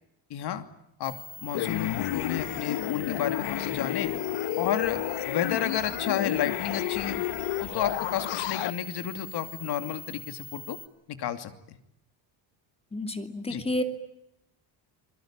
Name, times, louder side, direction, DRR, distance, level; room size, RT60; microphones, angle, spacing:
voice 1, 0.3-0.6 1.0-4.1 4.6-7.2 7.6-10.8 11.1-11.8 13.5-13.6, left 10 dB, 60° left, 9 dB, 2.8 m, -31 dB
sound 1, 1.0-10.9, left 1 dB, 10° right, 2.0 m, -43 dB
sound 2, 1.5-8.7, left 15 dB, 85° left, 1.2 m, -31 dB
voice 2, 12.9-13.8, left 1 dB, 15° left, 7 dB, 2.6 m, -30 dB
27.5 x 22.0 x 9.0 m, 0.80 s
cardioid pair, 155°, 44 cm